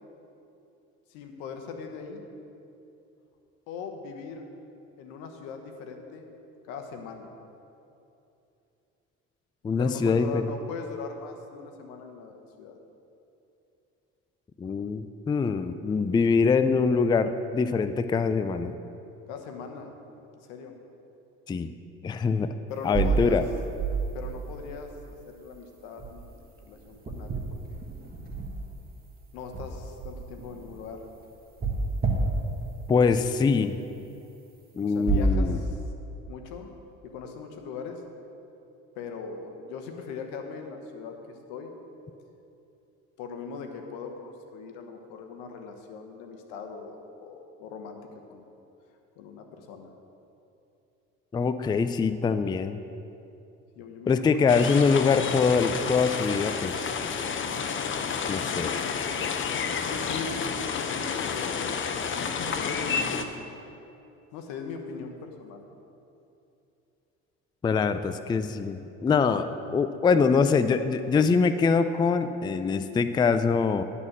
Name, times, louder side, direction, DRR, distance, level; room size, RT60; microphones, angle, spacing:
voice 1, 1.1-2.2 3.7-4.5 5.0-6.3 6.6-7.3 9.8-12.8 19.3-19.9 20.3-20.7 22.7-23.4 24.1-27.4 29.3-31.0 34.8-35.8 36.3-36.7 37.0-38.0 39.0-41.2 41.5-41.7 43.2-48.0 48.3-48.5 49.2-49.9 53.7-54.4 59.5-61.7 62.2-63.5 64.3-65.6, left 5 dB, 85° left, 4 dB, 1.1 m, -40 dB
voice 2, 9.6-10.5 14.6-18.7 21.5-21.7 22.0-22.5 22.8-23.4 32.9-33.8 34.8-35.6 51.3-52.8 54.1-56.9 58.3-59.0 67.6-73.8, left 5 dB, 15° left, 11 dB, 0.3 m, -24 dB
sound 1, 22.8-25.0 26.0-26.3 26.6-29.0 29.4-31.0 31.6-32.7 35.1-35.3, right 4 dB, 30° right, 1.4 m, -29 dB
sound 2, 54.5-63.2, left 6 dB, 40° left, 0.7 m, -30 dB
11.0 x 4.2 x 7.3 m, 2.8 s
supercardioid pair, 80°, 32 cm